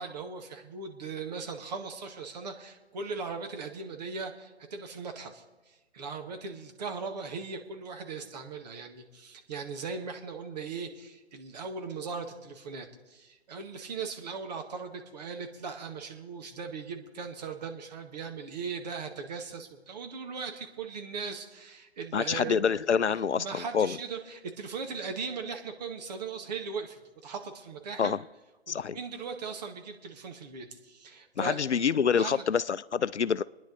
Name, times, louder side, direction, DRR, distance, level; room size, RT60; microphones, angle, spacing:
voice 1, 0.0-22.7 23.4-28.1 28.7-31.6 32.2-32.4, right 5 dB, 40° right, 1.8 m, -39 dB
voice 2, 22.1-24.0 28.0-28.2 28.7-29.0 31.4-33.4, left 7 dB, 85° left, 0.5 m, -27 dB
28.0 x 10.0 x 4.0 m
figure-of-eight pair, 135°, 33 cm